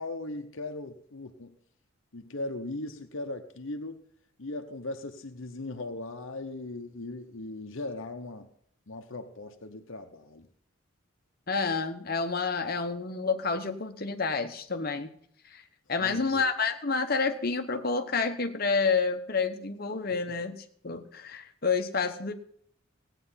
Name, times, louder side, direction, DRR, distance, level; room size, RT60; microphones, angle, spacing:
voice 1, 0.0-1.6 2.1-4.0 4.4-8.5 8.9-10.5 16.0-16.4, left 2 dB, 65° left, 5 dB, 0.9 m, -38 dB
voice 2, 11.5-15.1 15.5-15.6 15.9-22.3, left 4 dB, 45° left, 7 dB, 1.0 m, -29 dB
16.5 x 9.1 x 5.7 m, 0.64 s
head